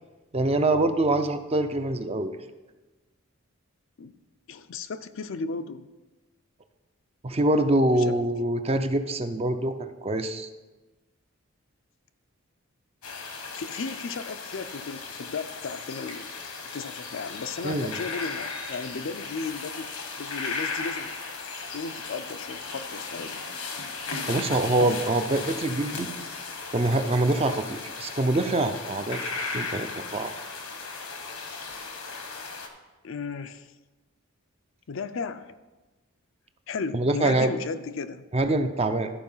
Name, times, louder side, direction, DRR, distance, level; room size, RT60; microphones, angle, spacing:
voice 1, 0.3-2.3 7.2-10.5 17.6-18.0 24.3-26.1 26.7-30.3 36.9-37.5 38.3-39.1, right 2 dB, 30° right, 8 dB, 0.5 m, -25 dB
voice 2, 4.5-5.9 7.9-8.2 13.5-16.3 16.6-19.9 20.2-21.2 21.7-23.4 33.0-33.7 34.9-35.5 36.7-38.2, left 4 dB, 60° left, 11 dB, 0.5 m, -35 dB
sound 1, 13.0-32.7, left 4 dB, 85° left, 1.2 m, -36 dB
13.0 x 4.8 x 5.5 m, 1.2 s
head